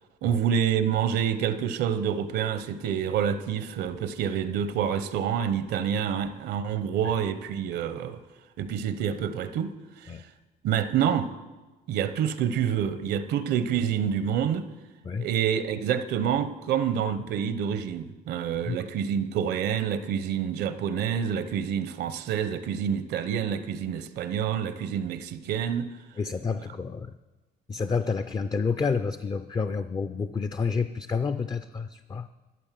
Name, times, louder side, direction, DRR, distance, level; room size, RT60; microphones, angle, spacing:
voice 1, 0.2-8.2 8.6-10.1 10.6-11.3 11.9-14.7 15.2-25.9, right 8 dB, 75° right, 0.8 m, -27 dB
voice 2, 26.2-27.1 27.7-32.3, left 5 dB, 25° left, 0.4 m, -29 dB
12.5 x 8.3 x 7.5 m
cardioid pair, 110°, 17 cm